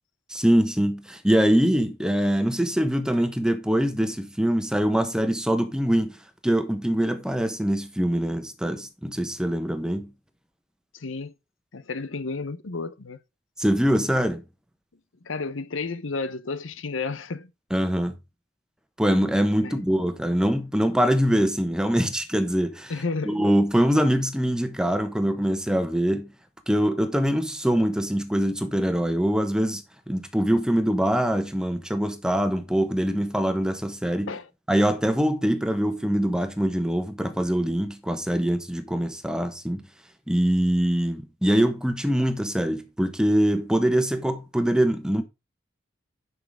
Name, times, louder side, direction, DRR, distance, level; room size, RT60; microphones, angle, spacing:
voice 1, 0.3-6.2 6.4-10.1 13.6-14.4 17.7-18.2 19.0-22.9 23.2-26.3 26.7-34.3 34.7-39.8 40.3-45.2, equal, 5° right, 1.1 m, -23 dB
voice 2, 10.9-11.3 11.7-13.2 15.2-17.5 19.6-19.7 22.9-23.4 34.3-34.5, left 4 dB, 90° left, 0.9 m, -31 dB
10.5 x 5.9 x 3.7 m
head